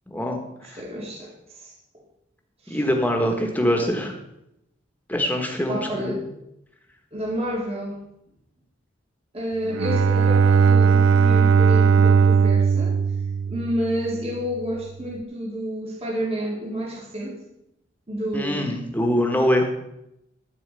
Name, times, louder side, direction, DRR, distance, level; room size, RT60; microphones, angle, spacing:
voice 1, 0.1-0.4 0.7-0.8 2.7-4.1 5.1-6.2 18.3-19.6, equal, 10° left, 3 dB, 1.5 m, -23 dB
voice 2, 0.6-2.0 2.6-2.8 5.7-6.3 7.1-8.0 9.3-13.0 13.5-17.4 18.1-18.7, equal, 30° right, -3 dB, 2.1 m, -30 dB
Bowed string instrument, 9.7-14.2, right 6 dB, 80° right, 0.3 m, -18 dB
13.5 x 4.7 x 8.3 m, 0.83 s
head